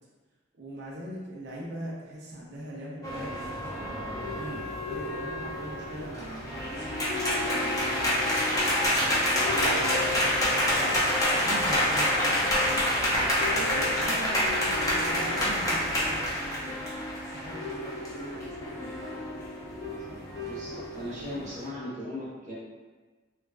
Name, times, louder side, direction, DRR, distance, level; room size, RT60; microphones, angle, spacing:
voice 1, 0.5-8.3 8.7-16.8 17.2-18.9, right 1 dB, 55° right, -5 dB, 0.6 m, -42 dB
sound 1, 3.0-21.7, equal, 15° left, 0.5 m, -28 dB
sound 2, 3.3-21.4, left 2 dB, 75° left, 1.0 m, -38 dB
voice 2, 20.4-22.5, left 1 dB, 40° right, -9 dB, 1.0 m, -38 dB
3.1 x 2.3 x 2.4 m, 1.3 s
head